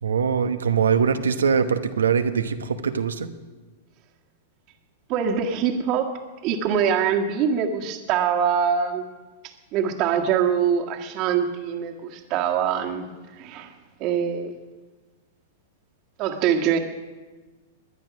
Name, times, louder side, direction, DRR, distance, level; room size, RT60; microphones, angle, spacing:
voice 1, 0.0-3.3, right 6 dB, 90° right, 9 dB, 1.0 m, -22 dB
voice 2, 5.1-9.1 9.7-13.1 13.4-13.7 14.0-14.6 16.2-16.8, right 7 dB, 45° right, 4 dB, 1.8 m, -24 dB
21.0 x 10.5 x 6.1 m, 1.3 s
hypercardioid pair, 115°, 0 cm